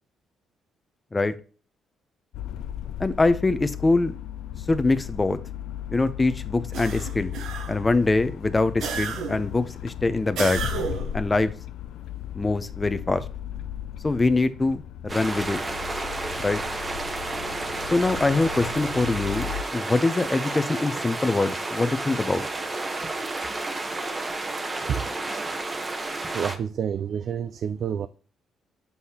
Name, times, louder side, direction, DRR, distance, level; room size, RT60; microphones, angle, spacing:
sound 1, 2.3-19.6, left 10 dB, 85° left, 0.3 m, -36 dB
voice 1, 3.0-4.2 4.7-5.4 5.9-7.4 7.7-10.6 11.1-11.5 12.3-13.2 14.0-15.6 16.4-16.6 17.9-22.5, left 3 dB, 20° left, 0.5 m, -23 dB
sound 2, 6.7-7.9 8.8-9.5 10.4-11.2, right 6 dB, 80° right, 0.8 m, -32 dB
sound 3, 15.1-26.6, right 2 dB, 25° right, 0.9 m, -31 dB
voice 2, 26.3-28.1, right 8 dB, 60° right, 0.3 m, -28 dB
6.3 x 5.5 x 2.8 m
cardioid pair, 90°, 0 cm